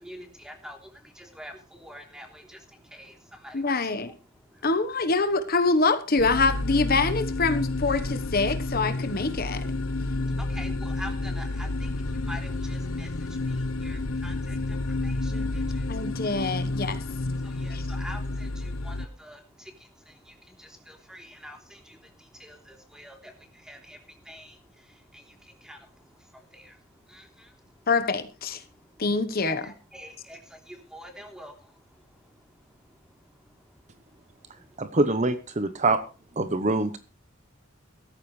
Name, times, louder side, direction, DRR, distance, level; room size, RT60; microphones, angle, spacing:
voice 1, 0.0-0.8 1.2-2.6 2.9-3.1 3.4-3.6 10.4-11.9 12.2-13.1 13.8-14.6 15.0-15.6 17.4-19.4 20.6-22.0 22.4-23.3 23.7-24.0 24.3-24.5 25.1-25.2 25.6-25.8 26.5-26.6 27.1-27.3 29.6-30.4 30.7-31.5, equal, 5° right, 3 dB, 3.3 m, -44 dB
voice 2, 3.5-4.1 4.6-9.6 15.3-15.5 15.9-17.0 17.7-17.8 27.9-28.6 29.0-29.7, left 3 dB, 45° left, 10 dB, 1.2 m, -25 dB
sound 1, 6.2-19.1, left 2 dB, 85° left, 0.9 m, -30 dB
voice 3, 34.8-36.0 36.4-37.0, right 2 dB, 35° right, 11 dB, 0.9 m, -24 dB
16.5 x 14.0 x 3.3 m, 0.33 s
head